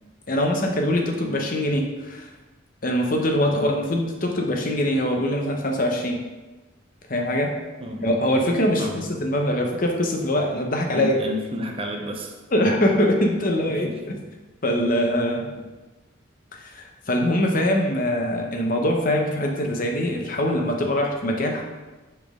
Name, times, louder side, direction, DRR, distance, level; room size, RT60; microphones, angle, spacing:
voice 1, 0.3-2.3 2.8-6.2 7.1-7.5 8.0-11.2 12.5-14.2 14.6-15.5 16.6-21.6, left 1 dB, 45° left, 2 dB, 0.8 m, -23 dB
voice 2, 3.5-3.8 7.8-8.1 8.8-9.1 10.9-12.4 13.9-14.0 15.6-15.7, left 1 dB, 30° right, 2 dB, 0.7 m, -31 dB
5.9 x 5.2 x 3.6 m, 1.2 s
head